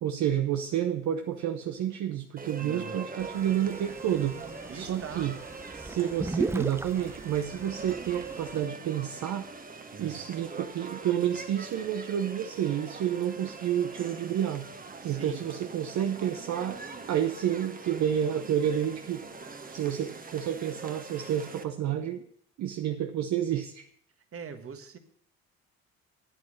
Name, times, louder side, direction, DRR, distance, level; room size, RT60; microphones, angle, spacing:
voice 1, 0.0-4.4 4.7-5.3 5.8-9.5 10.0-14.7 15.0-16.8 17.1-19.3 19.7-22.2 22.6-23.9, right 10 dB, 60° right, 6 dB, 0.9 m, -30 dB
sound 1, 2.4-21.6, right 4 dB, 25° right, 1.4 m, -43 dB
voice 2, 2.6-3.0 4.7-5.3 9.9-10.2 15.0-15.5 24.3-25.0, right 6 dB, 45° right, 8 dB, 1.6 m, -42 dB
sound 2, 3.2-8.7, right 2 dB, 10° right, 0.4 m, -38 dB
9.3 x 8.6 x 6.5 m, 0.64 s
supercardioid pair, 60°, 32 cm